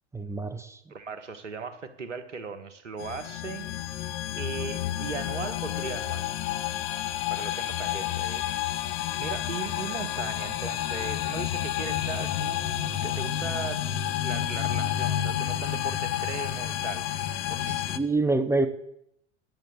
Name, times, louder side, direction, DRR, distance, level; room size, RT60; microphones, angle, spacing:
voice 1, 0.1-0.8 17.7-18.7, right 2 dB, 10° right, 9 dB, 0.9 m, -26 dB
voice 2, 0.9-6.2 7.3-8.4 9.2-17.1 17.5-17.8, right 5 dB, 80° right, 9 dB, 1.5 m, -38 dB
sound 1, 3.0-18.0, left 11 dB, 45° left, 1.0 m, -30 dB
10.5 x 7.6 x 8.2 m, 0.75 s
figure-of-eight pair, 85°, 36 cm